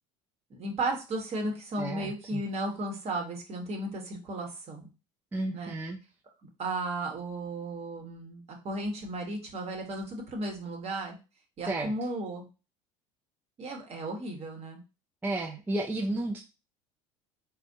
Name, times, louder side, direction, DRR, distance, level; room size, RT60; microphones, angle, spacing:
voice 1, 0.5-4.9 5.5-5.7 6.6-11.2 11.6-12.5 13.6-14.8, right 2 dB, 40° right, 2 dB, 1.0 m, -34 dB
voice 2, 1.8-2.4 5.3-6.0 11.7-11.9 15.2-16.4, right 2 dB, 10° right, 1 dB, 0.4 m, -32 dB
3.3 x 2.2 x 2.6 m, 0.31 s
hypercardioid pair, 80°, 17 cm